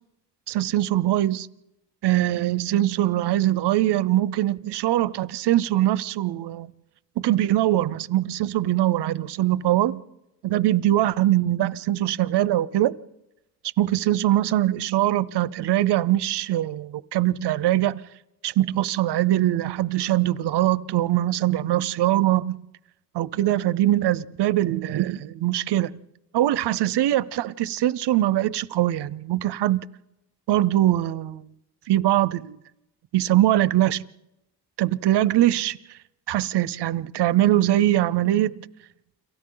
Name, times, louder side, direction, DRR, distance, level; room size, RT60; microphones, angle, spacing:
voice 1, 0.5-1.5 2.0-6.7 7.2-10.0 10.4-13.0 13.8-18.1 18.4-22.6 23.1-25.9 26.3-29.8 30.5-31.5 31.9-32.6 33.1-34.0 34.8-35.8 36.3-38.6, right 14 dB, 80° right, 0.7 m, -22 dB
30.0 x 23.5 x 3.9 m
cardioid pair, 110°, 40 cm